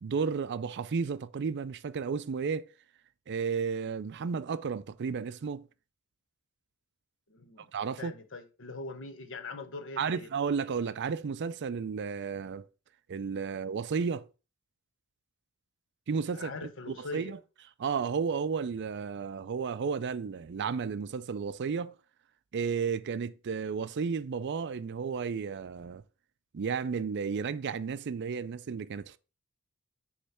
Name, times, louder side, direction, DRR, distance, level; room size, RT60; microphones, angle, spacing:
voice 1, 0.0-2.7 3.3-5.7 7.7-8.1 10.0-12.7 13.1-14.2 16.1-16.5 16.9-17.4 17.8-21.9 22.5-26.0 26.5-29.2, right 5 dB, 55° right, 0.4 m, -33 dB
voice 2, 7.3-7.7 8.0-10.3 16.3-17.3, left 3 dB, 60° left, 1.0 m, -42 dB
6.5 x 3.1 x 5.7 m
head